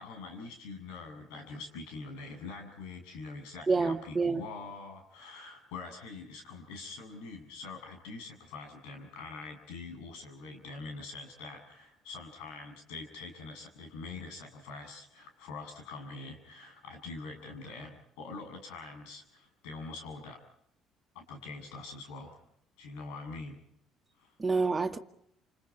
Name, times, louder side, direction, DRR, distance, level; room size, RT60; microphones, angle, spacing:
voice 1, 0.0-20.4 21.1-22.4 22.8-23.6 24.2-24.3, left 3 dB, 85° left, 5 dB, 7.3 m, -44 dB
voice 2, 3.7-4.4 24.4-25.0, right 4 dB, 25° right, 6 dB, 1.9 m, -27 dB
29.0 x 28.0 x 4.3 m, 0.73 s
supercardioid pair, 75°, 0 cm